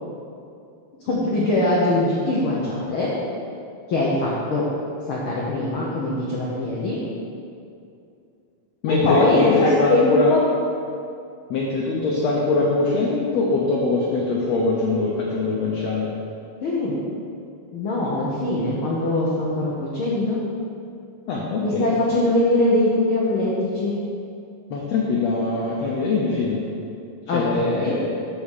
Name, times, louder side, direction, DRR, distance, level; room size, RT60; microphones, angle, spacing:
voice 1, 1.0-3.1 3.9-4.6 5.1-7.0 8.9-10.4 16.6-16.9 17.7-20.4 21.6-24.0 27.2-28.0, left 1 dB, 90° left, -5 dB, 1.1 m, -22 dB
voice 2, 8.8-10.3 11.5-16.1 21.3-21.9 24.7-26.6 27.3-28.2, left 3 dB, 70° left, -3 dB, 1.7 m, -22 dB
8.4 x 5.0 x 6.6 m, 2.5 s
omnidirectional pair, 3.9 m